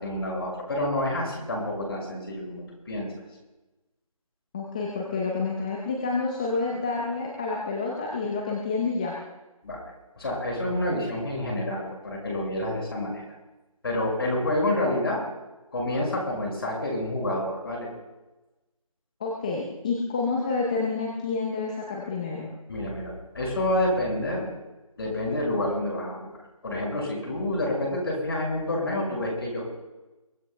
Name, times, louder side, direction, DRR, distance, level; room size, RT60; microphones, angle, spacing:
voice 1, 0.0-3.1 9.6-9.8 10.2-13.2 13.8-15.2 15.7-17.9 22.7-24.4 25.0-26.3 26.6-29.7, left 1 dB, 45° left, -1 dB, 6.0 m, -28 dB
voice 2, 4.5-9.2 19.2-22.5, left 4 dB, 15° left, -3 dB, 0.8 m, -29 dB
23.5 x 18.5 x 2.3 m, 1.1 s
figure-of-eight pair, 165°, 18 cm